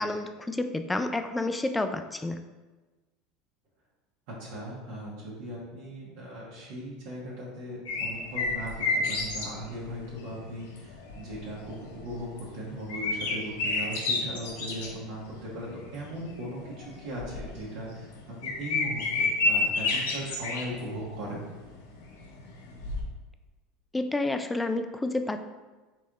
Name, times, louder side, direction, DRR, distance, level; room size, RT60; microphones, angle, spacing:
voice 1, 0.0-2.4 23.9-25.4, left 2 dB, 10° left, 8 dB, 0.3 m, -29 dB
voice 2, 4.3-21.5, equal, 70° right, -6 dB, 1.2 m, -38 dB
sound 1, 7.9-23.0, left 3 dB, 80° left, 0.8 m, -31 dB
4.0 x 3.2 x 3.8 m, 1.2 s
supercardioid pair, 105°, 0 cm